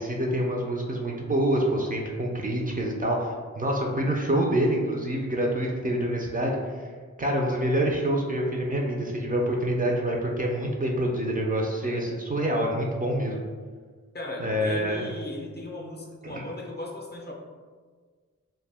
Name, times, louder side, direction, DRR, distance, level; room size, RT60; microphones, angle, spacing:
voice 1, 0.0-6.6 7.2-13.4 14.4-15.0 16.2-16.4, right 1 dB, 30° right, -1 dB, 0.4 m, -26 dB
voice 2, 14.1-17.3, left 2 dB, 35° left, -1 dB, 0.5 m, -37 dB
2.1 x 2.1 x 3.3 m, 1.6 s
cardioid pair, 50°, 30 cm